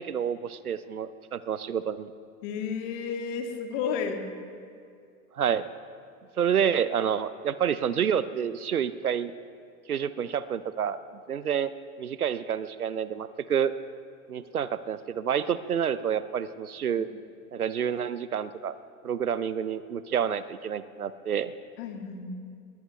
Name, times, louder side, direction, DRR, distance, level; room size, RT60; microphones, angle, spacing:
voice 1, 0.0-2.1 5.4-5.6 6.4-9.3 9.9-11.0 11.3-11.7 12.0-13.7 14.3-17.1 17.5-18.8 19.0-21.5, right 8 dB, 90° right, 15 dB, 0.6 m, -28 dB
voice 2, 2.4-4.2 17.0-17.1 21.8-22.3, left 6 dB, 55° left, 4 dB, 2.0 m, -32 dB
20.0 x 19.5 x 3.2 m, 2.4 s
figure-of-eight pair, 80°, 43 cm